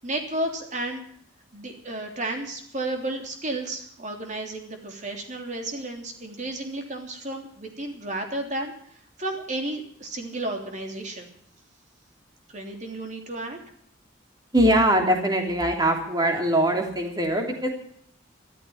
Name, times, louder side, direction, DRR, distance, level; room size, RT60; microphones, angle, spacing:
voice 1, 0.0-1.0 1.5-8.7 9.2-11.3 12.5-13.6, right 2 dB, 35° right, 3 dB, 3.3 m, -32 dB
voice 2, 14.5-17.7, right 1 dB, 20° right, 3 dB, 3.1 m, -22 dB
13.5 x 13.5 x 7.1 m, 0.64 s
head